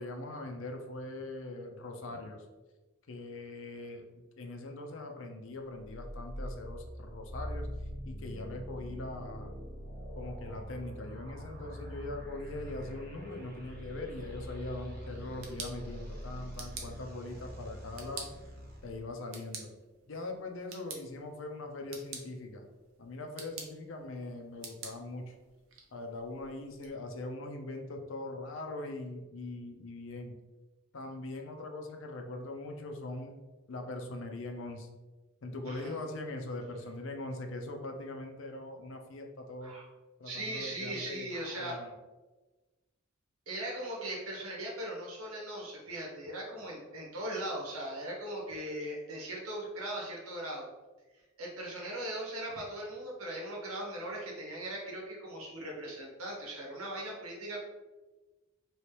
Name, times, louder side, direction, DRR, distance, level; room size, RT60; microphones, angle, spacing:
voice 1, 0.0-2.5 3.1-7.7 8.0-9.5 10.1-18.3 18.8-19.7 20.1-22.7 23.0-25.4 25.9-30.4 30.9-33.3 33.7-34.9 35.4-39.8 40.2-41.3 41.6-41.9, left 2 dB, 65° left, 4 dB, 0.5 m, -41 dB
sound 1, 5.8-19.0, equal, 45° right, 0.9 m, -43 dB
sound 2, 15.1-26.9, right 5 dB, 70° right, 0.6 m, -49 dB
voice 2, 35.7-36.0 39.6-39.8 40.2-41.7 43.5-50.7 51.4-57.6, right 1 dB, 85° right, -2 dB, 1.2 m, -39 dB
3.1 x 2.9 x 3.2 m, 1.2 s
head